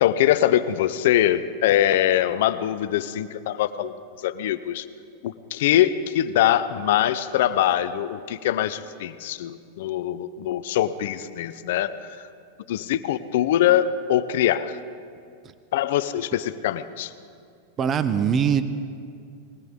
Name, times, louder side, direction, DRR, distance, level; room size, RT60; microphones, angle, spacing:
voice 1, 0.0-3.9 4.2-4.8 5.2-12.2 12.7-14.8 15.7-17.1, left 12 dB, 70° left, 13 dB, 0.7 m, -23 dB
voice 2, 17.8-18.6, right 7 dB, 25° right, 12 dB, 0.7 m, -21 dB
20.5 x 17.5 x 3.7 m, 2.3 s
supercardioid pair, 140°, 0 cm